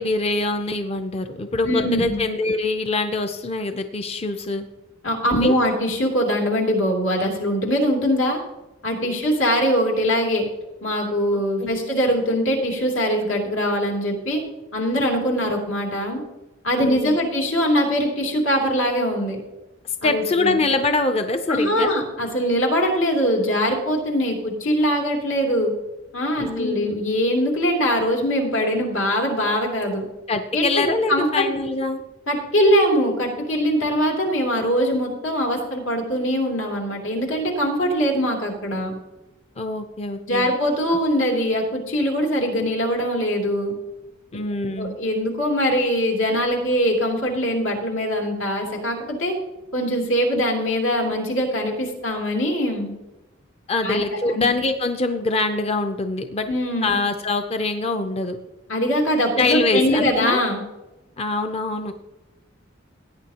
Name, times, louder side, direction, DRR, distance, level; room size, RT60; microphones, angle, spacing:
voice 1, 0.0-4.6 5.3-5.5 11.3-11.7 15.2-15.5 16.8-17.2 20.0-22.0 26.4-26.9 30.3-32.0 39.6-40.5 40.9-41.0 44.3-45.0 53.7-56.5 56.8-58.4 59.4-60.4 61.2-61.9, left 3 dB, 30° left, 7 dB, 0.5 m, -24 dB
voice 2, 1.6-2.2 5.0-8.4 8.8-10.4 10.8-14.4 14.7-16.2 16.6-19.4 20.0-20.6 21.5-25.7 26.1-30.0 30.5-31.4 32.3-38.9 40.3-43.7 44.8-49.3 49.7-52.9 53.8-54.0 54.3-54.5 56.5-56.9 58.7-60.6, equal, 85° left, -1 dB, 3.0 m, -22 dB
17.0 x 9.5 x 2.9 m, 1.0 s
head